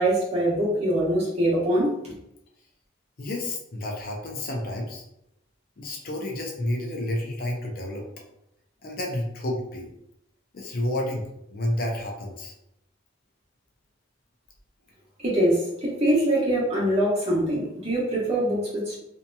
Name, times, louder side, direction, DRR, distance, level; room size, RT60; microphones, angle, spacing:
voice 1, 0.0-2.1 15.2-19.0, right 1 dB, 35° right, -6 dB, 1.0 m, -23 dB
voice 2, 3.2-5.0 5.8-8.0 8.8-9.9 10.5-12.5, left 1 dB, 50° left, 0 dB, 0.5 m, -30 dB
2.7 x 2.7 x 2.2 m, 0.83 s
head